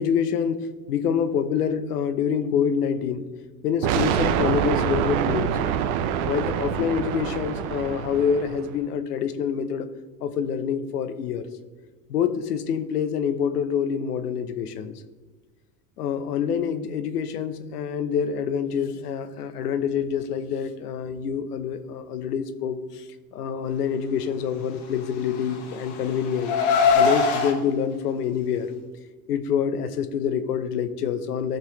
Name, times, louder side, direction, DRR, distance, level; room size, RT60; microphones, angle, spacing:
voice 1, 0.0-3.3 3.6-5.6 6.2-9.9 10.2-11.5 12.1-14.9 16.0-23.0 23.3-26.5 26.9-28.7 29.3-31.6, left 7 dB, 85° left, 10 dB, 0.9 m, -26 dB
sound 1, 3.8-8.7, right 9 dB, 65° right, 0.8 m, -25 dB
Car, 25.0-27.5, left 5 dB, 65° left, 1.8 m, -22 dB
15.5 x 5.6 x 3.2 m, 1.3 s
hypercardioid pair, 85°, 46 cm